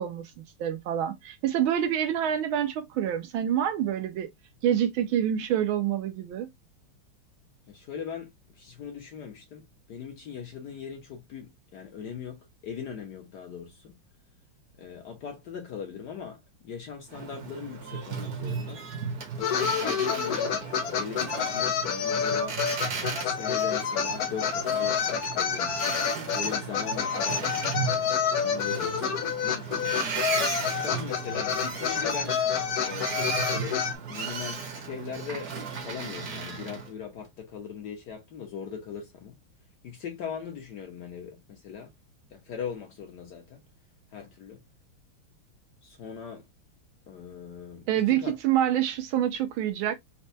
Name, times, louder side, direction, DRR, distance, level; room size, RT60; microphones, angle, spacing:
voice 1, 0.0-4.3 4.6-6.5 47.9-49.9, right 10 dB, 75° right, 1.3 m, -27 dB
voice 2, 7.7-13.9 14.8-18.8 19.4-20.6 20.9-22.6 23.2-25.8 26.3-27.5 28.4-30.1 30.7-32.4 32.8-35.5 35.8-39.4 39.8-41.9 42.3-43.6 44.1-44.6 45.8-46.4 47.1-48.4, left 7 dB, 65° left, 1.1 m, -40 dB
Boat Water vehicle, 17.1-36.9, right 5 dB, 55° right, 1.1 m, -36 dB
sound 1, 19.4-34.0, left 7 dB, 80° left, 0.8 m, -28 dB
4.3 x 2.2 x 2.6 m
omnidirectional pair, 2.4 m